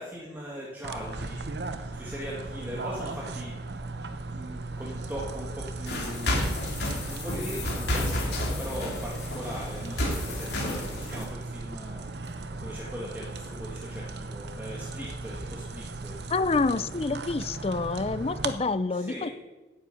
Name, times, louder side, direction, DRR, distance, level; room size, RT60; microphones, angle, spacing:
voice 1, 0.0-1.5 1.9-6.4 7.0-16.2 18.2-18.3 18.9-19.3, equal, 10° right, -4 dB, 1.7 m, -40 dB
sound 1, 0.8-18.5, right 3 dB, 70° right, 0.9 m, -37 dB
sound 2, 5.9-11.2, left 1 dB, 70° left, 3.1 m, -31 dB
voice 2, 16.3-19.3, left 3 dB, 35° left, 15 dB, 0.4 m, -27 dB
9.7 x 8.9 x 8.3 m, 1.2 s
head